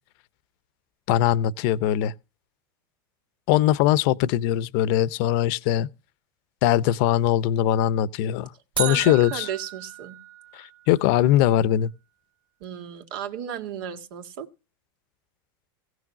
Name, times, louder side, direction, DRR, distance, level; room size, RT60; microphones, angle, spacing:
voice 1, 1.1-2.1 3.5-5.9 6.6-8.5 8.8-9.5 10.5-11.9, left 12 dB, 60° left, 0.8 m, -21 dB
sound 1, 8.8-10.9, right 9 dB, 45° right, 0.8 m, -33 dB
voice 2, 8.8-10.2 12.6-14.5, right 9 dB, 70° right, 2.2 m, -34 dB
16.5 x 6.3 x 7.4 m
hypercardioid pair, 110°, 12 cm